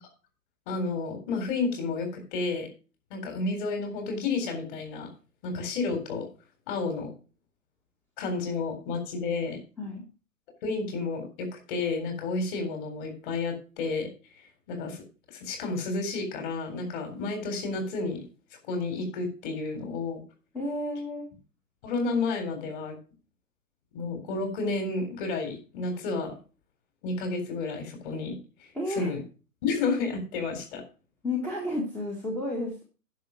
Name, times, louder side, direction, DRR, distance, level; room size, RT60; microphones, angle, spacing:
voice 1, 0.7-2.7 3.1-5.1 5.4-6.3 6.7-7.1 8.2-9.6 10.6-14.1 14.7-18.2 18.7-20.2 21.8-23.0 23.9-26.3 27.0-28.4 28.9-29.2 29.6-30.8, left 3 dB, 35° left, 5 dB, 3.9 m, -31 dB
voice 2, 20.5-21.3 28.7-29.1 31.2-32.8, left 1 dB, 5° left, -1 dB, 1.4 m, -31 dB
10.5 x 6.3 x 6.0 m, 0.34 s
hypercardioid pair, 145°, 45 cm